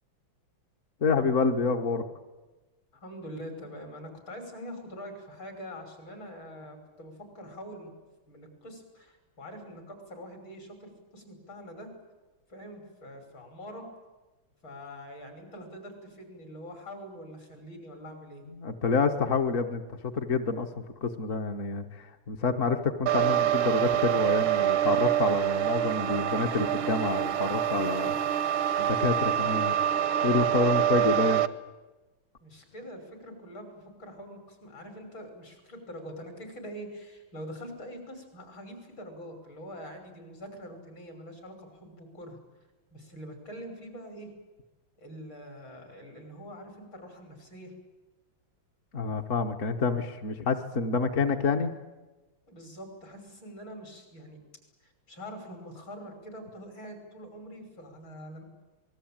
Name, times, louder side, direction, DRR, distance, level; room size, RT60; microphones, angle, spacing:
voice 1, 1.0-2.0 18.6-28.1 28.8-29.7 30.2-31.4 48.9-51.7, left 4 dB, 45° left, 5 dB, 1.4 m, -28 dB
voice 2, 2.9-7.9 8.3-11.9 12.5-13.8 14.6-18.4 32.4-42.4 42.9-44.3 45.0-47.7 52.5-54.4 54.8-58.4, equal, 70° left, 5 dB, 6.6 m, -44 dB
sound 1, 23.1-31.5, right 11 dB, 85° right, 1.8 m, -26 dB
26.5 x 20.5 x 8.9 m, 1.1 s
omnidirectional pair, 2.2 m